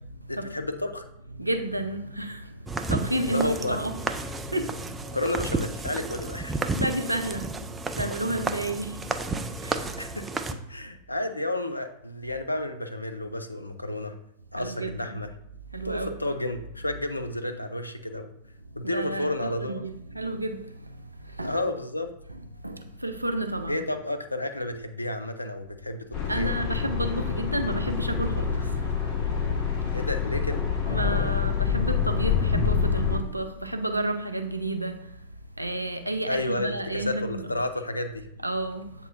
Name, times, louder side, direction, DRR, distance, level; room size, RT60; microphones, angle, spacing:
voice 1, 0.3-1.1 3.3-3.8 5.1-6.6 10.0-10.3 10.7-14.2 14.5-15.3 15.8-18.3 18.7-19.9 21.4-22.1 23.7-26.5 29.9-30.6 36.3-38.3, left 1 dB, 85° left, 0.4 m, -31 dB
voice 2, 1.4-2.4 2.9-3.9 4.5-4.7 6.8-7.6 8.0-9.0 9.6-9.8 14.6-15.2 15.7-16.2 18.9-20.6 21.4-21.6 22.6-23.8 26.3-28.5 30.9-35.0 35.6-37.5 38.4-38.9, right 1 dB, 85° right, 0.4 m, -30 dB
sound 1, 2.7-10.5, right 3 dB, 15° right, 0.3 m, -32 dB
sound 2, 26.1-33.2, left 6 dB, 40° left, 1.1 m, -26 dB
7.7 x 2.7 x 2.5 m
figure-of-eight pair, 90°, 0 cm